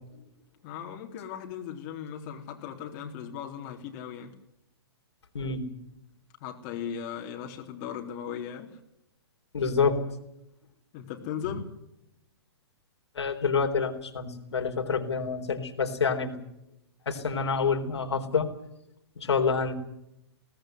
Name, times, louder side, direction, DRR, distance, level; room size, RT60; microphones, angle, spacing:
voice 1, 0.6-4.3 6.4-8.8 10.9-11.7, left 8 dB, 40° left, 2 dB, 3.6 m, -37 dB
voice 2, 5.3-5.7 9.5-10.0 13.2-16.4 17.1-18.5 19.2-19.7, left 5 dB, 80° left, 4 dB, 3.9 m, -27 dB
22.0 x 18.0 x 8.0 m, 0.84 s
hypercardioid pair, 125°, 14 cm